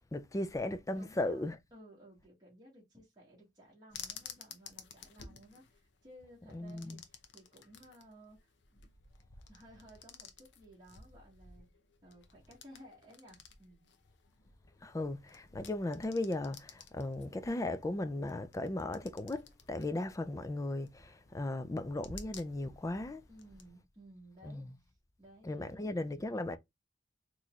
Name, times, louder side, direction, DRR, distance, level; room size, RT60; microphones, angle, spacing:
voice 1, 0.1-1.6 6.5-7.0 14.8-23.2 24.4-24.7 25.4-26.6, left 2 dB, 15° left, 0.4 m, -36 dB
voice 2, 0.9-8.5 9.5-11.7 12.0-13.9 23.3-24.9 25.2-25.9, right 1 dB, 20° right, 1.6 m, -57 dB
sound 1, 3.9-23.7, left 6 dB, 70° left, 0.7 m, -54 dB
4.1 x 3.0 x 2.4 m
head